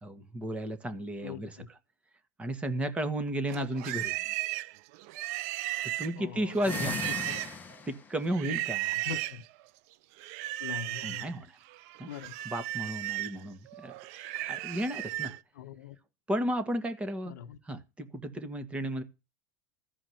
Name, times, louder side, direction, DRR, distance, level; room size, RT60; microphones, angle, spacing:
voice 1, 0.0-1.8 2.4-4.3 5.8-7.0 7.8-8.9 11.0-11.6 12.0-12.1 12.4-15.4 16.3-17.4 17.6-19.0, right 1 dB, 15° right, 1.7 m, -34 dB
voice 2, 1.2-1.7 3.5-3.6 6.2-6.9 7.3-7.4 9.1-9.4 10.6-11.3 12.1-12.3 15.6-15.9 17.3-17.6, left 9 dB, 85° left, 1.4 m, -42 dB
Livestock farm animals working animals, 3.5-7.7 8.3-9.4 10.2-11.3 11.7-15.4, right 17 dB, 60° right, 0.7 m, -35 dB
sound 1, 6.5-8.2, left 6 dB, 20° left, 0.9 m, -38 dB
15.0 x 5.0 x 7.9 m
supercardioid pair, 130°, 9 cm